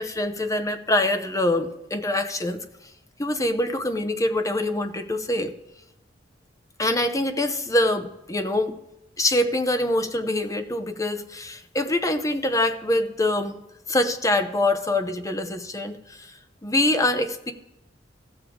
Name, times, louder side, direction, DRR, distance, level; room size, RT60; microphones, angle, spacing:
voice 1, 0.0-2.6 3.2-5.5 6.8-8.8 9.2-13.6 13.9-16.3 16.6-17.5, left 1 dB, 20° left, 8 dB, 0.7 m, -24 dB
15.5 x 6.9 x 3.7 m, 0.92 s
head